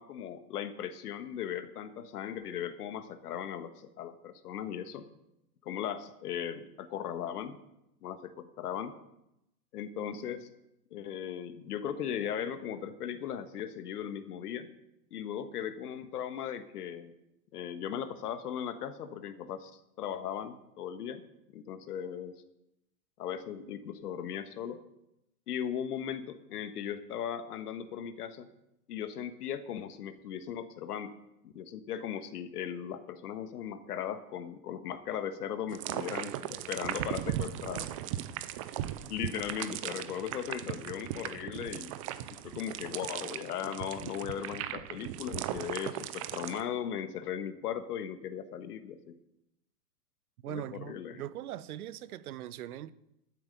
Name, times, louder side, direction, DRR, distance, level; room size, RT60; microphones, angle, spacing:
voice 1, 0.0-5.1 5.6-7.6 8.0-8.9 9.7-10.5 10.9-14.7 15.1-17.1 17.5-21.2 21.5-22.4 23.2-24.8 25.5-28.5 28.9-31.2 31.4-38.0 39.1-41.9 42.4-49.1 50.5-51.2, left 9 dB, 65° left, 1.5 m, -38 dB
sound 1, 35.7-46.6, right 12 dB, 25° right, 0.4 m, -38 dB
voice 2, 36.1-36.7 50.4-52.9, right 12 dB, 60° right, 0.9 m, -41 dB
12.0 x 9.5 x 6.8 m
hypercardioid pair, 120°, 50 cm